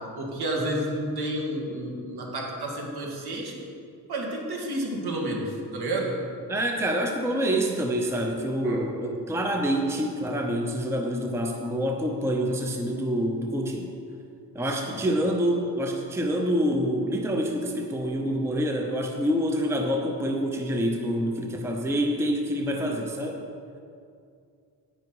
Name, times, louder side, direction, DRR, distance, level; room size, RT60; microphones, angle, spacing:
voice 1, 0.1-3.6 4.1-6.2 8.6-8.8 14.8-15.0, right 1 dB, 65° right, -1 dB, 2.2 m, -30 dB
voice 2, 6.5-13.9 14.5-23.4, equal, 5° right, 2 dB, 0.7 m, -27 dB
10.0 x 9.7 x 4.8 m, 2.4 s
wide cardioid pair, 155°, 41 cm